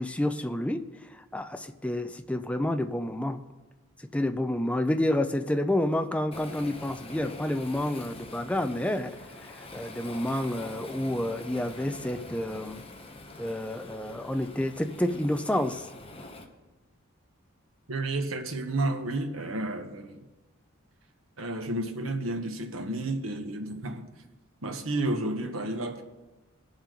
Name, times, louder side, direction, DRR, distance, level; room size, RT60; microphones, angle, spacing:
voice 1, 0.0-3.4 4.0-12.8 13.4-15.9, left 1 dB, 5° left, 0.5 m, -29 dB
Waves surf, 6.3-16.4, left 2 dB, 30° left, 1.1 m, -45 dB
voice 2, 17.9-20.2 21.4-24.1 24.6-26.0, right 2 dB, 85° right, 1.3 m, -31 dB
19.5 x 7.2 x 3.9 m
head